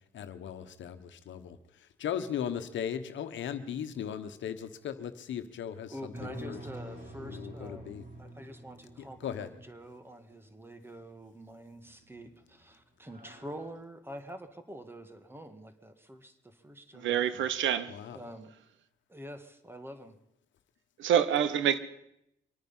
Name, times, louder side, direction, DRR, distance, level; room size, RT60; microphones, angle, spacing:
voice 1, 0.1-6.6 7.2-8.1 9.0-9.6 17.9-18.3, left 9 dB, 70° left, 1.3 m, -38 dB
voice 2, 5.9-17.8 18.1-18.5 19.1-20.2, equal, 10° right, 1.7 m, -47 dB
sound 1, 6.1-10.0 11.9-12.3 12.7-12.8 13.1-13.7, equal, 50° right, 4.9 m, -46 dB
voice 3, 16.9-17.9 21.0-21.8, right 9 dB, 75° right, 1.0 m, -26 dB
24.5 x 9.5 x 5.7 m
cardioid pair, 90°, 20 cm